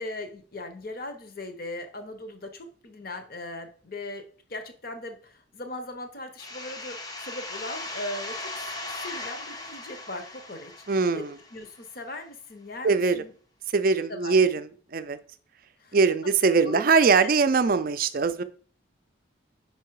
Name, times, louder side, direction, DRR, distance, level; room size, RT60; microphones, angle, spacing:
voice 1, 0.0-4.2 4.5-8.5 9.0-10.7 11.1-11.3 11.5-13.3 14.1-14.4 15.8-16.0 16.2-16.3 16.6-16.8 17.1-17.3, left 2 dB, 50° left, 7 dB, 1.0 m, -38 dB
sound 1, 6.4-11.9, left 2 dB, 20° left, 0.7 m, -38 dB
voice 2, 10.9-11.3 12.8-13.2 13.7-15.2 15.9-18.4, right 4 dB, 45° right, 12 dB, 0.4 m, -22 dB
5.5 x 4.7 x 4.7 m, 0.44 s
head